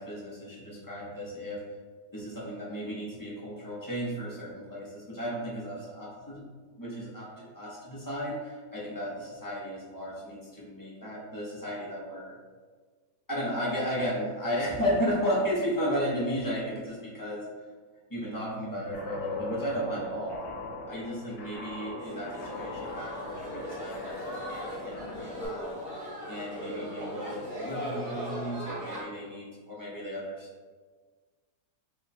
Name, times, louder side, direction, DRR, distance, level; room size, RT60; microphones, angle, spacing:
voice 1, 0.0-1.6 2.1-6.5 6.8-12.3 13.3-17.5 18.1-20.4 20.9-25.9 26.3-30.5, equal, 25° left, -7 dB, 0.4 m, -34 dB
Guitar, 18.9-25.5, left 3 dB, 85° left, 1.1 m, -40 dB
sound 1, 22.0-29.0, equal, 40° right, 1.3 m, -39 dB
3.0 x 2.2 x 4.0 m, 1.5 s
omnidirectional pair, 1.6 m